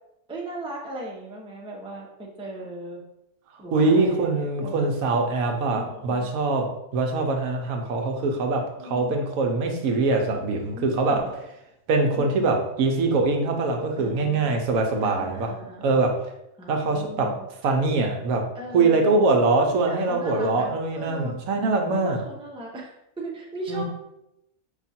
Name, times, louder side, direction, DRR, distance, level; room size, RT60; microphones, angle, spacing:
voice 1, 0.3-3.0 3.6-5.0 5.7-6.3 8.6-9.2 10.8-11.3 12.0-12.5 14.0-14.5 15.0-16.0 16.6-17.5 18.5-19.1 19.7-21.4 21.9-23.8, right 1 dB, 5° right, -3 dB, 0.6 m, -38 dB
voice 2, 3.7-11.4 11.9-15.5 15.8-16.2 16.7-22.2 23.7-23.8, right 3 dB, 85° right, 3 dB, 1.2 m, -23 dB
5.1 x 2.4 x 4.2 m, 0.84 s
omnidirectional pair, 1.4 m